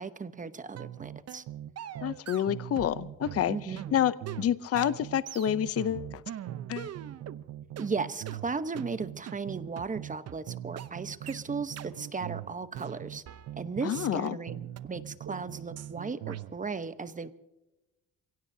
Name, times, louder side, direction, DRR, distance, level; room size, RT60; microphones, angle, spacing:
voice 1, 0.0-1.4 3.5-3.8 7.8-13.2 13.6-17.3, right 4 dB, 25° right, 12 dB, 1.0 m, -36 dB
sound 1, 0.7-2.2 2.5-6.2 6.5-10.2 10.5-14.2 14.5-16.6, right 12 dB, 85° right, 0.7 m, -42 dB
sound 2, 0.8-0.9 1.3-1.5 1.8-3.0 3.2-7.4 7.8-7.9 8.3-8.4 8.8-8.9 9.3-9.4 9.8-9.9 10.3-10.4 10.8-10.9 11.3-11.4 11.8-11.9 12.3-12.4 12.7-13.9 14.3-14.4 14.8-14.9 15.3-15.4 15.8-15.9 16.3-16.4, right 10 dB, 55° right, 0.8 m, -43 dB
voice 2, 2.0-3.6 3.9-6.2 6.7-6.9 13.8-14.4, left 10 dB, 50° left, 15 dB, 0.7 m, -28 dB
28.5 x 17.0 x 2.8 m, 1.0 s
cardioid pair, 90°, 30 cm